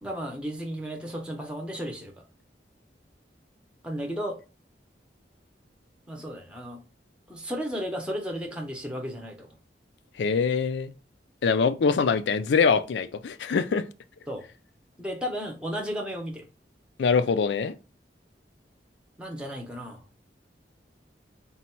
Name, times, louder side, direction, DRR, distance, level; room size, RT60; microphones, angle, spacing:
voice 1, 0.0-2.2 3.8-4.4 6.1-6.8 7.3-9.6 14.3-14.4 15.0-16.5 19.2-20.0, equal, 5° right, 0.7 m, -34 dB
voice 2, 10.2-10.9 11.4-13.9 17.0-17.8, left 5 dB, 85° left, 0.4 m, -24 dB
4.1 x 2.2 x 4.3 m
head